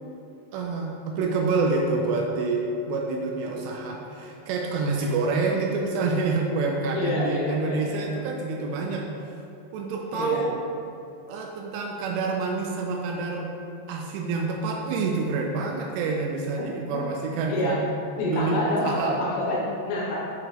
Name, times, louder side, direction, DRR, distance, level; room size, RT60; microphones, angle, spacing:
voice 1, 0.5-9.1 9.7-10.5 11.3-13.5 13.9-17.8 18.3-19.2, right 3 dB, 85° right, 0 dB, 2.4 m, -27 dB
voice 2, 6.9-8.2 10.1-10.5 16.6-16.7 17.5-17.9 18.2-20.3, left 1 dB, 80° left, -3 dB, 2.9 m, -27 dB
7.9 x 4.8 x 2.9 m, 2.6 s
omnidirectional pair, 5.5 m